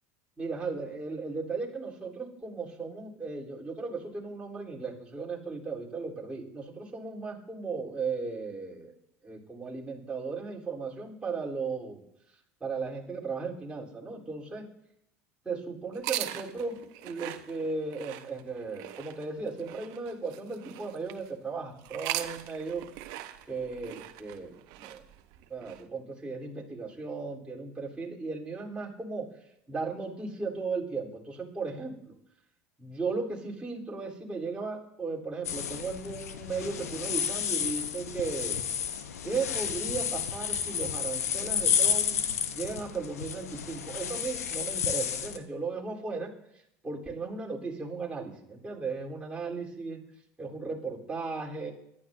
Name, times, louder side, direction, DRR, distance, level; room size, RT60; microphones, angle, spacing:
voice 1, 0.4-8.9 9.2-12.0 12.6-14.6 15.4-16.8 17.0-22.8 23.5-25.0 25.5-29.3 29.7-32.1 32.8-38.6 39.2-46.3 46.8-50.0 50.4-51.7, right 4 dB, 15° right, -4 dB, 3.7 m, -36 dB
sound 1, 15.9-21.3 21.8-25.8, right 14 dB, 60° right, 1.0 m, -40 dB
sound 2, 35.4-45.4, left 8 dB, 85° left, 0.9 m, -31 dB
23.5 x 12.0 x 2.7 m, 0.81 s
hypercardioid pair, 85°, 8 cm